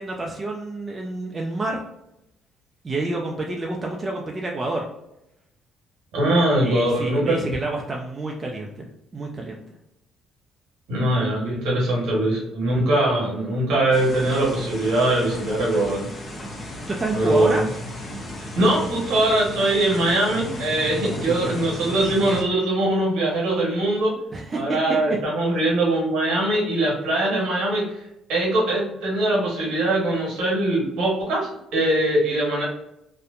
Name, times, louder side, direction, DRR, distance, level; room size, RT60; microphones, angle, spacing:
voice 1, 0.0-1.8 2.8-4.8 6.6-8.9 9.1-9.6 16.9-17.6 21.3-21.6 24.3-24.8, right 2 dB, 30° right, -1 dB, 0.4 m, -28 dB
voice 2, 6.1-7.5 10.9-16.1 17.1-17.6 18.6-24.1 24.5-27.8 28.3-32.6, right 1 dB, 70° right, -3 dB, 1.1 m, -22 dB
sound 1, 13.9-22.4, left 1 dB, 40° left, 0.8 m, -35 dB
2.6 x 2.1 x 2.4 m, 0.84 s
hypercardioid pair, 55°, 0 cm